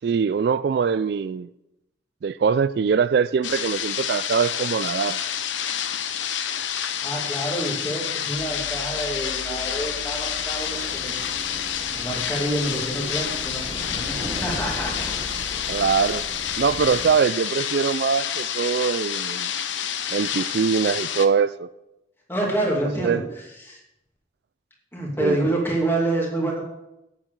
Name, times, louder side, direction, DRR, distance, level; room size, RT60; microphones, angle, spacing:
voice 1, 0.0-1.5 2.2-5.2 15.7-16.2 16.6-19.5 20.1-21.7 23.0-23.2 25.2-25.4, right 6 dB, 60° right, 15 dB, 0.3 m, -22 dB
sound 1, 3.4-21.3, left 9 dB, 80° left, 0.8 m, -29 dB
voice 2, 7.0-11.2 11.9-13.6 13.9-15.5 22.3-23.8 24.9-26.6, right 1 dB, 10° left, -2 dB, 2.6 m, -27 dB
sound 2, 8.3-16.9, left 2 dB, 65° left, 2.8 m, -42 dB
sound 3, 8.3-17.2, equal, 20° right, 1.3 m, -40 dB
9.2 x 7.5 x 6.5 m, 0.88 s
head